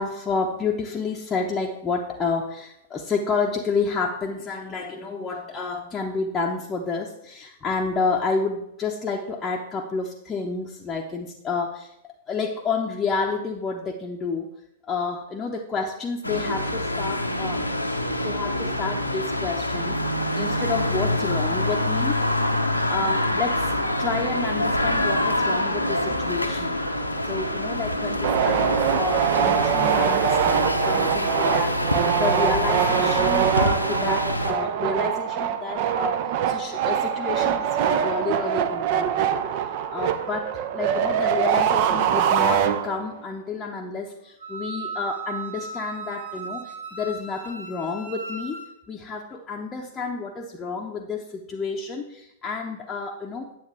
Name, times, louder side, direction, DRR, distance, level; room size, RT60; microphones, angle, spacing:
voice 1, 0.0-14.5 14.9-17.7 18.2-20.0 20.3-22.1 22.9-23.7 24.0-26.8 27.2-39.3 39.9-48.6 48.9-53.6, left 4 dB, 15° left, -2 dB, 0.8 m, -30 dB
sound 1, 16.2-34.5, left 1 dB, 85° left, 0.8 m, -25 dB
sound 2, 28.2-43.2, right 9 dB, 40° right, 0.6 m, -23 dB
Wind instrument woodwind instrument, 44.4-48.7, right 3 dB, 75° right, 2.5 m, -36 dB
9.4 x 7.9 x 3.4 m, 0.79 s
figure-of-eight pair, 105°, 0 cm